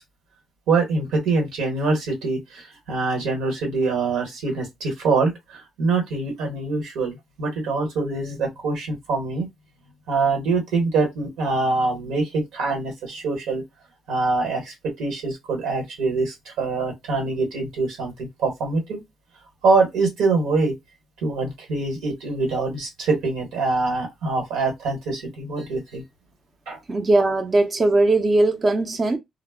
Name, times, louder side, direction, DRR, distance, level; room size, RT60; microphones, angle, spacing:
voice 1, 0.7-9.5 10.1-13.6 14.1-19.0 19.6-20.7 21.2-26.0 26.7-26.8, right 3 dB, 90° right, 1.1 m, -24 dB
voice 2, 26.9-29.2, right 2 dB, 35° right, 0.5 m, -19 dB
2.0 x 2.0 x 3.5 m
cardioid pair, 90°, 0 cm